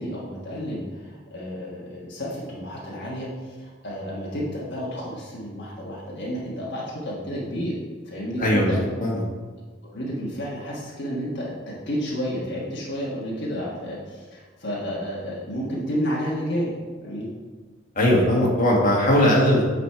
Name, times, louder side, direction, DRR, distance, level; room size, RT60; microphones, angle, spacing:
voice 1, 0.0-7.7 8.0-8.8 9.9-11.5 11.9-16.7 17.0-17.3, equal, 60° left, -5 dB, 1.4 m, -31 dB
voice 2, 8.4-8.7 9.0-9.2 17.9-19.7, left 1 dB, 40° left, -4 dB, 1.6 m, -19 dB
8.7 x 4.1 x 4.6 m, 1.4 s
head